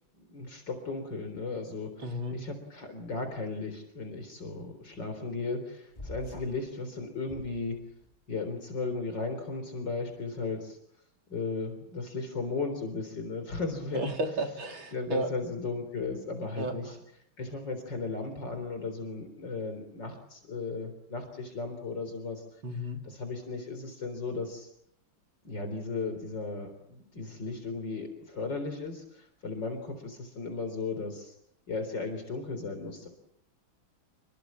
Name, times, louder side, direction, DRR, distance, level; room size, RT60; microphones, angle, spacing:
voice 1, 0.1-7.8 8.3-10.8 11.3-14.1 14.9-17.0 17.4-22.4 23.0-24.7 25.4-31.3 31.7-33.1, left 3 dB, 65° left, 7 dB, 4.6 m, -36 dB
voice 2, 2.0-2.4 13.9-15.3 16.6-16.9 22.6-23.0, right 1 dB, 80° right, 3 dB, 4.6 m, -33 dB
sound 1, 5.9-6.7 7.2-8.1, left 1 dB, 20° left, 3.6 m, -45 dB
29.0 x 22.5 x 7.4 m, 0.73 s
omnidirectional pair, 2.1 m